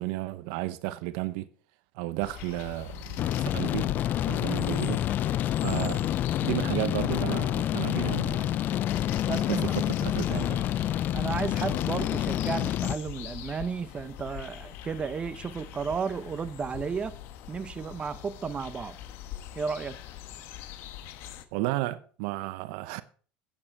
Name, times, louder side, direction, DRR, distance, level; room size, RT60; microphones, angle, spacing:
voice 1, 0.0-1.5 1.9-3.9 4.3-5.0 5.6-6.1 6.4-8.6 9.5-10.7 21.5-23.0, right 17 dB, 75° right, 0.6 m, -33 dB
sound 1, 2.2-21.5, left 11 dB, 65° left, 1.1 m, -43 dB
sound 2, 3.2-13.0, left 12 dB, 50° left, 0.4 m, -28 dB
voice 2, 9.3-9.8 11.1-17.2 17.5-19.0 19.6-20.0, right 6 dB, 25° right, 0.7 m, -33 dB
8.9 x 8.6 x 4.4 m
supercardioid pair, 100°, 4 cm